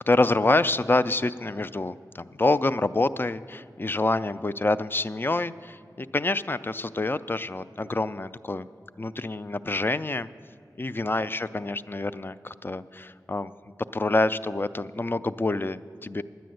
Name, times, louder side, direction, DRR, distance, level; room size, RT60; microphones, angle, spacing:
voice 1, 0.1-8.7 9.0-10.3 10.8-13.5 13.9-16.2, left 2 dB, 30° left, 14 dB, 0.3 m, -26 dB
10.0 x 9.4 x 7.7 m, 2.4 s
wide cardioid pair, 60°, 7 cm